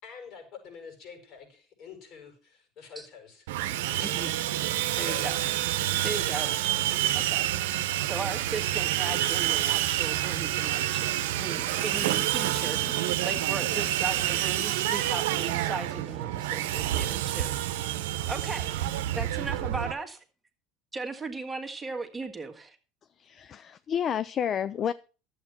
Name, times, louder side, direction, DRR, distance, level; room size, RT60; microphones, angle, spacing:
voice 1, 0.0-3.4 5.0-5.3 5.8-6.8, left 6 dB, 60° left, 4 dB, 6.6 m, -46 dB
Sawing, 3.5-19.9, right 13 dB, 85° right, 0.8 m, -28 dB
voice 2, 4.0-4.3 5.0-5.4 6.0-6.5 7.1-7.7 8.0-17.6 18.3-20.2 20.9-22.8, right 3 dB, 15° right, 3 dB, 1.8 m, -37 dB
sound 1, 11.4-18.7 19.0-19.1, right 1 dB, 10° left, 1.8 m, -48 dB
voice 3, 23.2-24.9, left 8 dB, 40° left, 16 dB, 0.5 m, -30 dB
11.5 x 8.0 x 5.9 m, 0.35 s
supercardioid pair, 95°, 0 cm